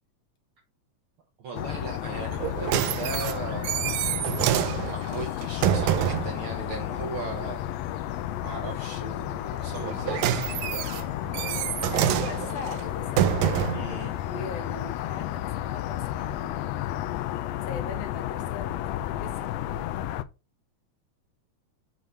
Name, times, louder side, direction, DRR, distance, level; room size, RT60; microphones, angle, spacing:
voice 1, 1.4-8.0 8.4-11.0 13.7-14.2, right 4 dB, 65° right, 1.4 m, -38 dB
sound 1, 1.5-20.2, left 13 dB, 80° left, 1.6 m, -32 dB
sound 2, 2.3-6.4 9.7-13.9 14.7-14.8, right 12 dB, 80° right, 1.9 m, -27 dB
voice 2, 11.6-13.8 14.2-17.2 17.6-19.9, left 4 dB, 65° left, 1.9 m, -41 dB
6.8 x 3.9 x 4.4 m
omnidirectional pair, 3.4 m